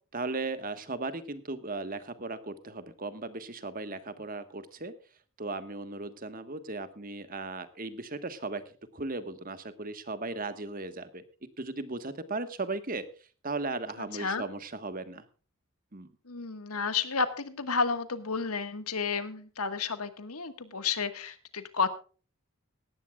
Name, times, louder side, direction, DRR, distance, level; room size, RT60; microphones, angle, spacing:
voice 1, 0.1-4.9 5.4-8.6 8.9-11.2 11.6-13.1 13.4-15.2 15.9-16.1, right 3 dB, 40° right, 11 dB, 1.3 m, -36 dB
voice 2, 14.0-14.4 16.3-21.9, left 5 dB, 85° left, 11 dB, 1.5 m, -31 dB
18.5 x 14.0 x 2.3 m, 0.37 s
head